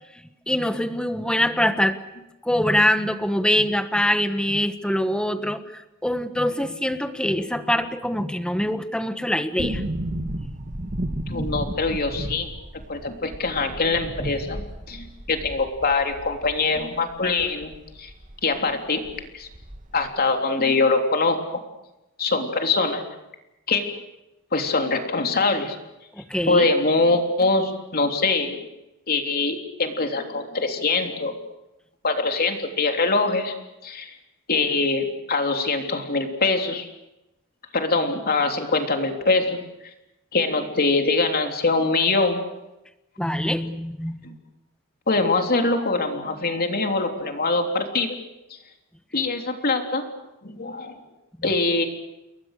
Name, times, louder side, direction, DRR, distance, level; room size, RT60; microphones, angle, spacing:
voice 1, 0.5-2.0 2.4-9.8 10.1-10.5 26.1-26.6 43.2-44.1 51.4-51.5, left 1 dB, 5° left, 10 dB, 1.4 m, -24 dB
sound 1, 9.6-18.4 18.7-18.8 19.0-20.1 20.3-20.4, right 1 dB, 40° right, 2.0 m, -33 dB
voice 2, 11.3-12.5 12.9-17.7 18.0-18.1 18.4-19.0 19.3-19.5 19.9-21.4 22.2-23.0 23.7-23.8 24.5-25.8 26.5-28.6 29.1-31.4 32.0-33.5 33.8-34.1 34.5-36.9 37.7-39.6 40.3-42.4 44.2-44.3 45.1-48.2 48.5-48.6 49.1-50.2 50.4-51.0 51.4-51.8, left 3 dB, 45° left, 4 dB, 3.4 m, -23 dB
29.5 x 22.0 x 6.7 m, 0.95 s
head